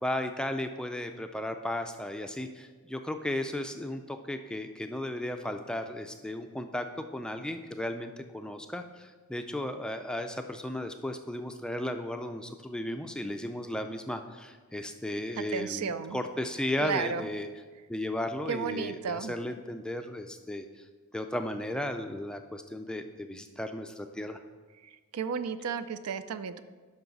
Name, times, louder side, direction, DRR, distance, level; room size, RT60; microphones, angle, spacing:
voice 1, 0.0-6.9 7.1-17.5 17.9-20.7 21.1-24.4, left 1 dB, 5° left, 6 dB, 0.3 m, -35 dB
voice 2, 15.4-16.2 16.8-17.3 18.5-19.3 24.8-26.6, right 6 dB, 80° right, 12 dB, 0.4 m, -33 dB
10.5 x 6.0 x 4.0 m, 1.4 s
head